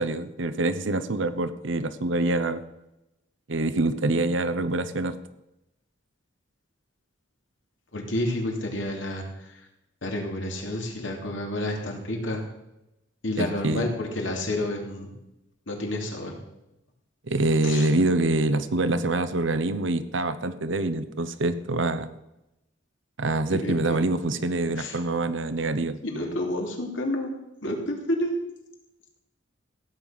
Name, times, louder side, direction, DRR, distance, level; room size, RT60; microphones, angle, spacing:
voice 1, 0.0-2.6 3.5-5.2 13.4-13.9 17.3-22.1 23.2-26.0, right 2 dB, 75° right, 12 dB, 0.9 m, -25 dB
voice 2, 7.9-9.5 10.0-12.4 13.2-15.1 15.7-16.4 17.6-17.9 23.5-24.0 24.7-25.0 26.0-27.3 27.6-28.3, left 1 dB, 75° left, 1 dB, 2.9 m, -30 dB
16.0 x 8.9 x 5.8 m, 0.91 s
head